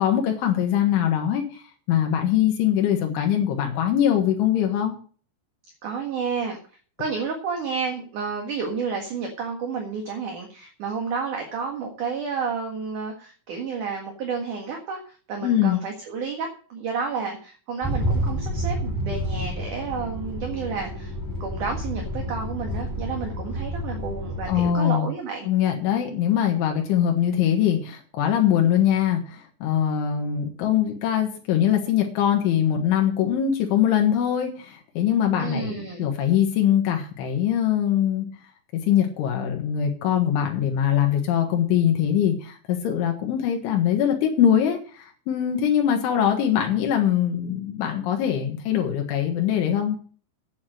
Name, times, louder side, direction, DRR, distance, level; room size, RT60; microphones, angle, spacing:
voice 1, 0.0-1.6 1.9-4.9 15.4-15.8 24.5-25.1 25.5-38.3 38.7-50.0, left 10 dB, 85° left, 2 dB, 3.9 m, -22 dB
voice 2, 5.8-6.6 7.0-21.1 21.4-25.5 35.4-36.1, right 5 dB, 55° right, 2 dB, 2.7 m, -31 dB
sound 1, 17.8-24.7, equal, 10° right, 1.3 m, -29 dB
9.6 x 9.3 x 6.4 m, 0.41 s
omnidirectional pair, 5.4 m